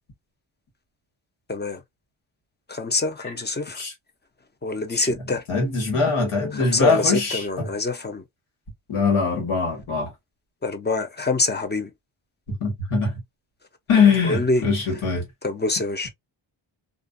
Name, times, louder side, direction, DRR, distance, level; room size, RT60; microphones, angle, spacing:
voice 1, 1.5-1.8 2.7-3.8 4.6-5.4 6.5-8.2 10.6-11.9 14.2-14.6 15.4-16.1, left 3 dB, 20° left, 0.6 m, -25 dB
voice 2, 5.5-7.7 8.9-10.1 12.6-13.1 13.9-15.2, left 5 dB, 90° left, 1.5 m, -22 dB
2.5 x 2.5 x 2.5 m
cardioid pair, 60°, 49 cm